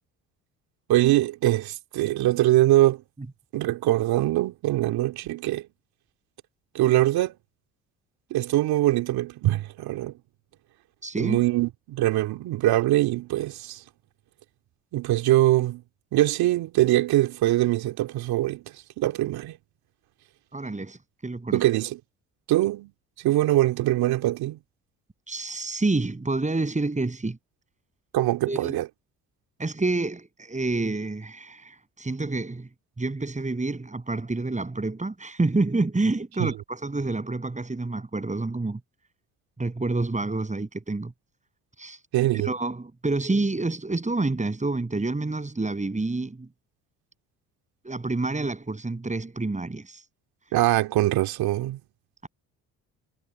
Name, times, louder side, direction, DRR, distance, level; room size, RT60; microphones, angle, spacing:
voice 1, 0.9-3.0 3.5-5.6 6.7-7.3 8.3-10.1 11.2-13.8 14.9-15.8 16.1-18.6 19.0-19.6 21.5-22.0 22.5-22.9 23.2-24.6 28.1-28.9 36.4-36.5 42.1-42.5 50.5-51.8, right 15 dB, 70° right, 2.8 m, -23 dB
voice 2, 11.0-11.4 20.5-21.6 25.3-27.4 28.5-28.8 29.6-32.7 33.0-38.8 39.6-41.1 41.8-42.0 42.3-46.5 47.8-50.1 50.5-50.6, right 2 dB, 20° right, 7.6 m, -28 dB
hypercardioid pair, 65°, 39 cm